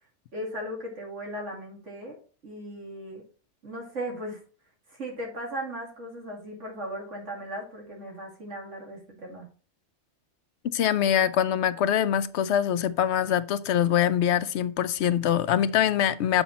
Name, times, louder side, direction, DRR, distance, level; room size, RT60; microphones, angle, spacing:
voice 1, 0.3-2.2 2.4-3.2 3.6-4.4 4.9-9.5, equal, 80° right, 2.7 m, -37 dB
voice 2, 10.7-16.4, left 10 dB, 70° left, 0.8 m, -24 dB
7.1 x 5.8 x 4.1 m
omnidirectional pair, 1.2 m